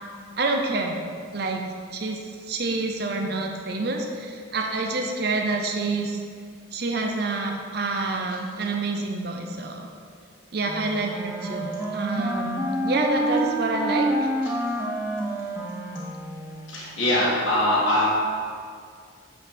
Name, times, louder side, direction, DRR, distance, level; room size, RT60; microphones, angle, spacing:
voice 1, 0.4-1.0 1.3-1.7 1.9-2.2 2.5-6.2 6.7-9.9 10.5-14.1, right 3 dB, 55° right, 2 dB, 0.7 m, -27 dB
Wind instrument woodwind instrument, 10.7-16.8, right 1 dB, 15° right, 0.8 m, -28 dB
voice 2, 16.7-18.1, left 1 dB, 85° left, -7 dB, 1.8 m, -22 dB
8.7 x 4.9 x 4.3 m, 2.1 s
head